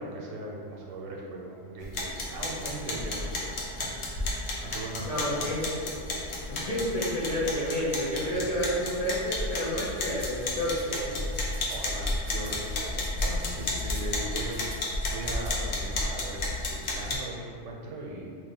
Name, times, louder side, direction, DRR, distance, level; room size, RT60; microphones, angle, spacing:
voice 1, 0.0-5.5 8.2-8.7 11.7-18.3, right 2 dB, 90° right, -1 dB, 1.0 m, -39 dB
sound 1, 1.8-17.2, left 2 dB, 80° left, 0.9 m, -32 dB
voice 2, 5.0-5.9 6.5-11.3, equal, 45° left, -9 dB, 0.5 m, -30 dB
sound 2, 9.8-15.6, right 4 dB, 65° right, 0.8 m, -51 dB
2.6 x 2.4 x 3.7 m, 2.2 s
omnidirectional pair, 1.3 m